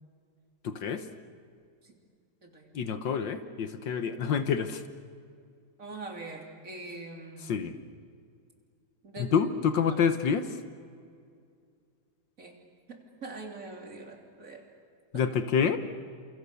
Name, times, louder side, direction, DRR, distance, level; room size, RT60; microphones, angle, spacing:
voice 1, 0.6-1.1 2.7-4.8 7.4-7.8 9.2-10.6 15.1-15.8, left 6 dB, 65° left, 10 dB, 1.7 m, -27 dB
voice 2, 2.4-2.7 5.8-7.5 9.0-9.3 12.4-12.6 12.9-14.7 15.1-15.2, right 3 dB, 40° right, 1 dB, 3.6 m, -43 dB
29.5 x 28.0 x 7.0 m, 2.3 s
omnidirectional pair, 2.2 m